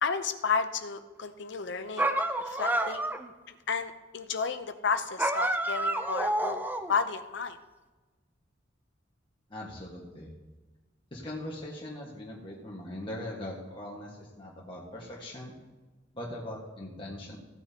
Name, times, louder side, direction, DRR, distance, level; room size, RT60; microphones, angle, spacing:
voice 1, 0.0-2.2 2.4-3.1 3.5-6.6 6.9-7.6, left 5 dB, 65° left, 9 dB, 0.7 m, -32 dB
sound 1, 2.0-3.3 5.2-7.0, right 1 dB, 10° right, 0.5 m, -29 dB
voice 2, 9.5-10.3 11.1-15.5 16.1-17.4, left 1 dB, 25° left, -5 dB, 1.6 m, -40 dB
16.0 x 9.0 x 2.9 m, 1.2 s
head